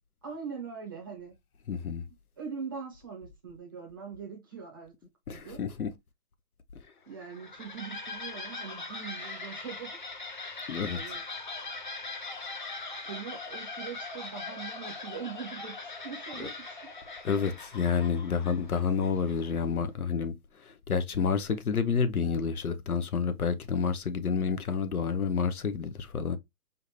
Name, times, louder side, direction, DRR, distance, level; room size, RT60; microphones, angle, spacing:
voice 1, 0.2-1.3 2.4-4.9 5.3-5.6 7.0-10.0 10.9-11.2 13.0-16.9, right 6 dB, 15° right, 0.7 m, -42 dB
voice 2, 1.7-2.0 5.3-5.9 10.7-11.0 16.4-16.5 17.2-20.3 20.9-26.4, left 6 dB, 70° left, 1.0 m, -29 dB
sound 1, 7.1-19.7, left 3 dB, 35° left, 0.6 m, -41 dB
5.0 x 2.6 x 3.1 m
hypercardioid pair, 160°, 45 cm